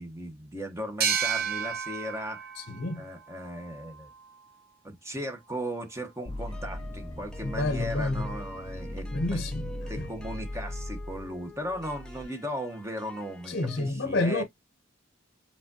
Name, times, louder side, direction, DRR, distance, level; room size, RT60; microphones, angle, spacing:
voice 1, 0.0-2.5 3.0-4.1 4.8-9.4 9.9-14.4, equal, 15° right, 1.0 m, -37 dB
sound 1, 1.0-4.4, right 6 dB, 45° right, 0.8 m, -32 dB
voice 2, 2.6-3.0 7.4-8.4 9.1-10.1 13.5-14.4, left 2 dB, 50° left, 0.7 m, -30 dB
sound 2, 6.3-12.2, left 1 dB, 25° left, 2.1 m, -38 dB
sound 3, 6.5-13.9, left 1 dB, 5° left, 0.6 m, -49 dB
4.9 x 3.5 x 2.7 m
head